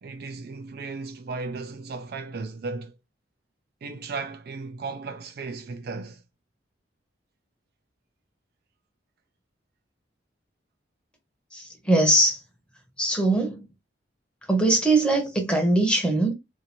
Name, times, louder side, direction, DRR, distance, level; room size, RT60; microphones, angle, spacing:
voice 1, 0.0-2.9 3.8-6.2, right 4 dB, 55° right, 0.4 m, -35 dB
voice 2, 11.5-12.4 13.0-13.7 14.5-16.3, right 2 dB, 5° left, 0.8 m, -21 dB
2.7 x 2.5 x 2.9 m
head